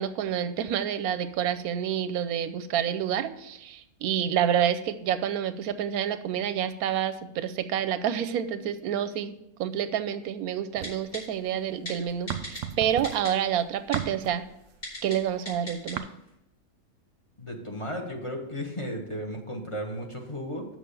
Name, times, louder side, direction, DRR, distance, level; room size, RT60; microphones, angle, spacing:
voice 1, 0.0-9.3 9.6-14.4 15.0-16.1, right 9 dB, 90° right, 11 dB, 1.1 m, -28 dB
sound 1, 10.7-11.7 12.0-16.0, right 10 dB, 65° right, 0.8 m, -36 dB
Typing, 10.8-11.2 11.9-12.0 12.3-12.6 13.0-13.3 13.9-14.0 14.8-15.2 15.5-15.9 16.3-16.4, left 1 dB, 50° left, 3.7 m, -36 dB
voice 2, 17.4-20.7, equal, 25° left, 1 dB, 1.1 m, -34 dB
6.5 x 6.2 x 6.8 m, 0.83 s
omnidirectional pair, 1.5 m